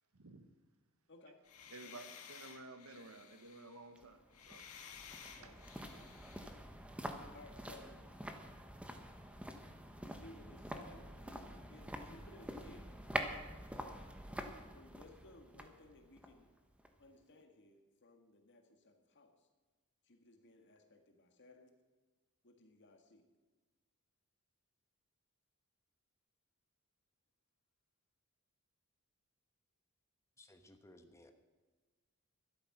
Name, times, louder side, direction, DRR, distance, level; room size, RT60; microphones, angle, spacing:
voice 1, 0.1-0.5 1.7-4.7 5.4-5.5, right 2 dB, 70° right, 9 dB, 1.2 m, -54 dB
sound 1, 1.4-6.5, left 7 dB, 75° left, 1.7 m, -55 dB
sound 2, 4.0-17.1 17.4-17.5, right 1 dB, 5° right, 1.1 m, -47 dB
voice 2, 5.9-6.3 7.3-8.1 10.0-12.9 13.7-14.0 14.7-16.5 17.0-19.5 20.0-21.7 22.4-23.2, left 2 dB, 55° left, 5 dB, 1.7 m, -60 dB
voice 3, 30.4-31.3, left 1 dB, 15° left, 6 dB, 1.2 m, -60 dB
13.0 x 12.0 x 5.9 m, 1.3 s
head